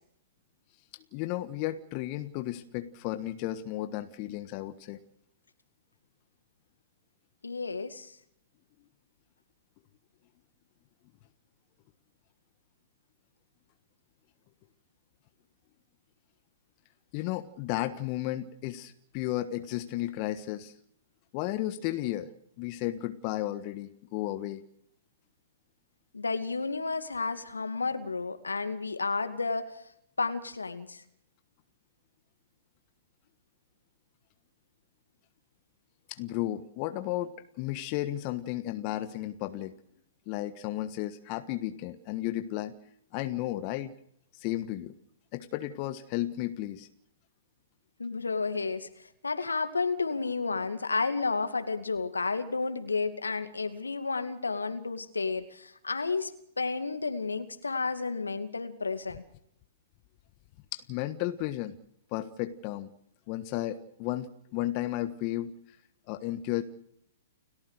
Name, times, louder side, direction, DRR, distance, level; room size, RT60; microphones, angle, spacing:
voice 1, 1.1-5.0 17.1-20.7 21.3-22.3 22.6-24.6 36.1-39.7 40.3-42.7 43.1-43.9 44.3-44.9 45.3-46.9 60.7-61.7 62.1-62.9 63.3-65.5 66.1-66.6, left 15 dB, 40° left, 9 dB, 1.4 m, -33 dB
voice 2, 7.4-8.1 26.1-29.7 30.2-31.0 48.0-56.3 56.6-59.2, left 4 dB, 85° left, 8 dB, 2.4 m, -31 dB
30.0 x 14.0 x 6.6 m, 0.71 s
figure-of-eight pair, 115°, 0 cm